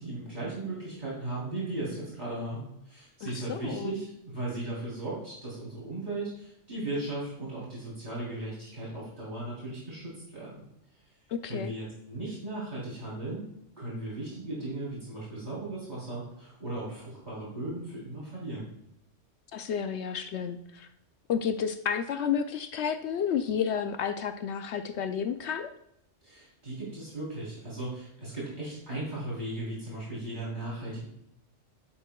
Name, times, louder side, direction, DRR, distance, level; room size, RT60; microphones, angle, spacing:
voice 1, 0.0-10.6 11.5-13.5 13.8-18.7 26.2-31.0, right 2 dB, 40° right, -8 dB, 3.5 m, -37 dB
voice 2, 3.2-3.9 11.3-11.7 19.5-20.9 21.3-25.7, left 7 dB, 70° left, 8 dB, 0.8 m, -31 dB
11.0 x 7.4 x 2.3 m, 0.79 s
omnidirectional pair, 1.3 m